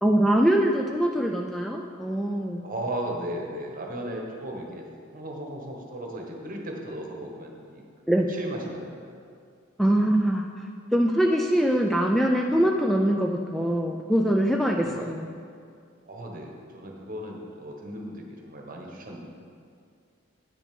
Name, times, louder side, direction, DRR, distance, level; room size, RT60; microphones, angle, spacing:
voice 1, 0.0-2.6 8.1-8.3 9.8-10.5 10.9-15.3, right 1 dB, ahead, 1 dB, 0.3 m, -23 dB
voice 2, 2.6-4.8 5.1-7.8 8.1-9.1 14.8-15.2 16.1-19.2, right 1 dB, 45° right, 1 dB, 1.2 m, -36 dB
9.1 x 6.2 x 5.2 m, 2.2 s
head